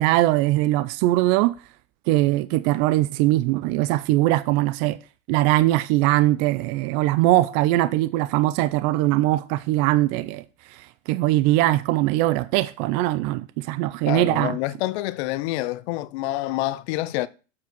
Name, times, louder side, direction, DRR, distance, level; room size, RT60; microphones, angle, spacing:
voice 1, 0.0-1.6 2.1-5.0 5.3-14.6, right 16 dB, 45° right, 0.5 m, -21 dB
voice 2, 14.1-17.3, left 16 dB, 60° left, 0.7 m, -27 dB
7.5 x 4.5 x 6.0 m
supercardioid pair, 120°, 36 cm